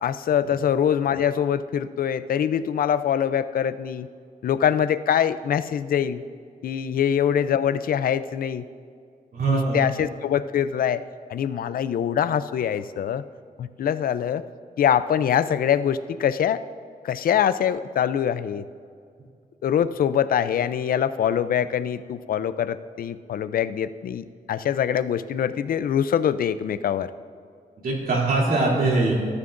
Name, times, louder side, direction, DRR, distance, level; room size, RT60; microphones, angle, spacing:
voice 1, 0.0-4.1 4.4-6.2 6.6-8.6 9.5-11.0 11.3-13.2 13.6-14.4 14.8-16.6 17.0-18.6 19.6-27.1, left 9 dB, 70° left, 13 dB, 0.5 m, -24 dB
voice 2, 9.3-9.8 27.8-29.1, right 3 dB, 70° right, -2 dB, 2.9 m, -22 dB
18.5 x 13.0 x 2.6 m, 2.2 s
wide cardioid pair, 140°, 15 cm